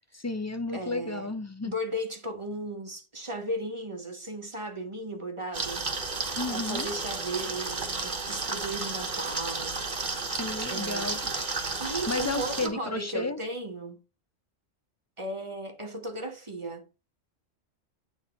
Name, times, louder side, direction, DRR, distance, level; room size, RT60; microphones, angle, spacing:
voice 1, 0.1-1.7 6.4-6.9 10.3-11.2 12.1-13.4, left 3 dB, 25° left, 0.3 m, -32 dB
voice 2, 0.7-1.3 1.6-5.8 6.4-9.8 10.7-11.5 11.8-14.0 15.2-16.8, right 1 dB, 25° right, 1.3 m, -36 dB
sound 1, 5.5-12.7, right 3 dB, 45° right, 1.4 m, -32 dB
9.2 x 3.6 x 4.2 m
omnidirectional pair, 1.2 m